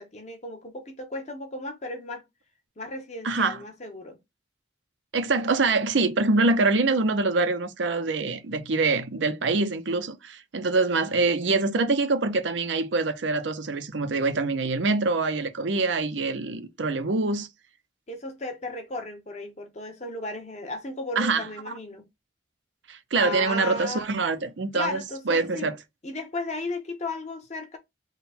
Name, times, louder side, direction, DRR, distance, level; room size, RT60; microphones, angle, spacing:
voice 1, 0.0-2.2 2.8-4.2 18.1-22.1 23.1-24.0 24.7-25.7 26.0-27.8, left 2 dB, 40° left, 0.8 m, -35 dB
voice 2, 3.2-3.6 5.1-17.5 21.2-21.4 22.9-25.7, right 3 dB, 85° right, 0.6 m, -25 dB
3.7 x 2.2 x 4.1 m
head